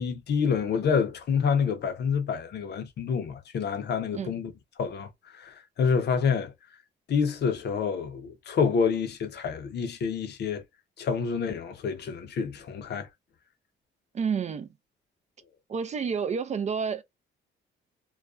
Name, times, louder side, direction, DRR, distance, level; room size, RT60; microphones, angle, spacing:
voice 1, 0.0-4.5 4.8-6.5 7.1-10.6 11.0-13.1, left 6 dB, 55° left, 0.7 m, -28 dB
voice 2, 14.1-14.7 15.7-17.0, right 6 dB, 35° right, 0.4 m, -29 dB
2.4 x 2.2 x 2.3 m
cardioid pair, 90°, 20 cm